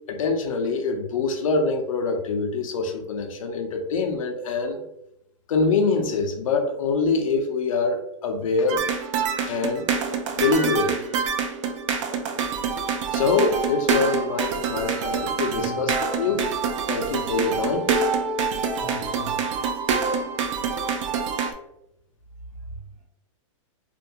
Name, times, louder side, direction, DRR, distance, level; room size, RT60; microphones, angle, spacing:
voice 1, 0.1-4.8 5.5-8.8 9.4-9.9 10.3-11.0 13.1-16.5 16.9-17.9, left 4 dB, 85° left, 3 dB, 0.6 m, -24 dB
sound 1, 8.7-21.5, right 5 dB, 65° right, 0.4 m, -26 dB
voice 2, 15.5-15.9 18.8-19.6 22.6-23.0, right 1 dB, 40° right, -3 dB, 1.1 m, -41 dB
2.5 x 2.2 x 2.7 m, 0.81 s
hypercardioid pair, 150°, 17 cm